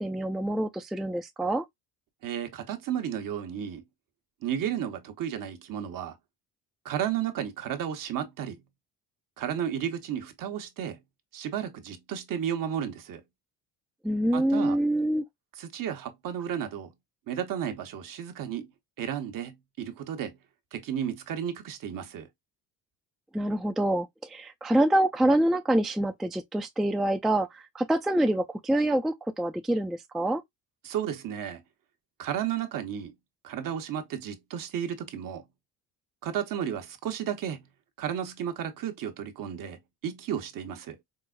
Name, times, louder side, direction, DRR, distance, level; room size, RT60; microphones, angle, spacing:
voice 1, 0.0-1.6 14.0-15.2 23.3-30.4, right 1 dB, ahead, 0.3 m, -26 dB
voice 2, 2.2-3.8 4.4-6.2 6.8-8.6 9.4-11.0 11.3-13.2 14.3-14.8 15.6-16.9 17.3-18.7 19.0-20.4 20.7-22.3 30.8-31.6 32.2-33.1 33.4-35.4 36.2-37.6 38.0-41.0, right 9 dB, 60° right, 0.9 m, -33 dB
4.7 x 2.0 x 2.4 m
supercardioid pair, 80°, 37 cm